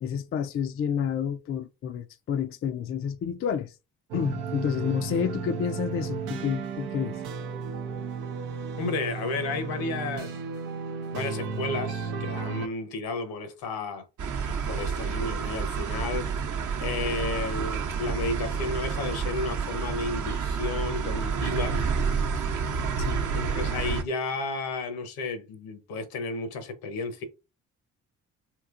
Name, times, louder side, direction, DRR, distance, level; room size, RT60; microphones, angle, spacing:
voice 1, 0.0-3.7 4.1-7.2 23.0-23.3, left 7 dB, 35° left, 0.4 m, -29 dB
sound 1, 4.1-12.7, right 5 dB, 85° right, 0.6 m, -34 dB
voice 2, 8.8-10.3 11.1-14.1 14.7-16.3 16.8-21.8 23.3-27.2, left 3 dB, 70° left, 0.9 m, -32 dB
sound 2, 14.2-24.0, right 6 dB, 50° right, 0.8 m, -29 dB
2.9 x 2.9 x 2.4 m
hypercardioid pair, 45°, 38 cm